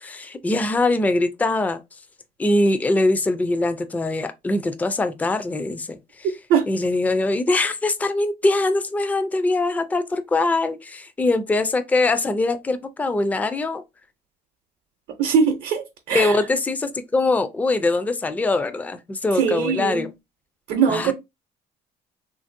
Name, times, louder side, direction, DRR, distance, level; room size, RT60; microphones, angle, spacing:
voice 1, 0.0-1.8 2.4-6.3 6.7-13.8 16.1-20.1 20.9-21.1, left 2 dB, 10° left, 0.3 m, -22 dB
voice 2, 15.2-16.3 19.4-20.1 20.7-21.1, right 6 dB, 70° right, 0.6 m, -21 dB
3.0 x 2.5 x 2.5 m
cardioid pair, 110°, 17 cm